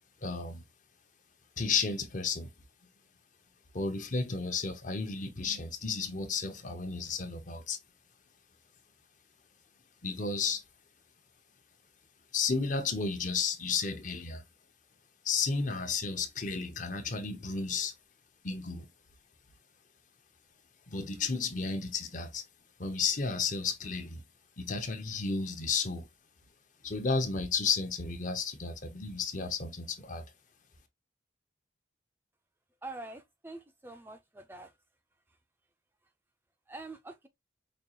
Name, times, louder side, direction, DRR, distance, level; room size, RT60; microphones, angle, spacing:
voice 1, 0.2-0.6 1.6-2.5 3.7-7.8 10.0-10.6 12.3-14.4 15.2-17.9 18.4-18.9 20.9-22.4 22.8-24.2 24.6-26.1 26.8-30.2, left 5 dB, 45° left, 0.8 m, -32 dB
voice 2, 32.8-34.7 36.7-37.3, right 2 dB, 10° right, 0.4 m, -45 dB
5.2 x 2.4 x 2.8 m
head